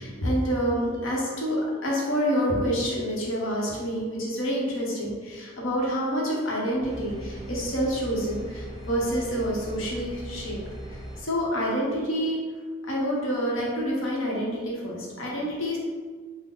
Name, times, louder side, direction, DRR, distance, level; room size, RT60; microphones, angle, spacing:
voice 1, 0.0-10.6 11.2-12.4 12.9-15.8, equal, 80° left, -4 dB, 0.9 m, -27 dB
sound 1, 6.8-11.2, right 1 dB, 25° right, 0.6 m, -39 dB
3.9 x 2.1 x 3.7 m, 1.5 s
head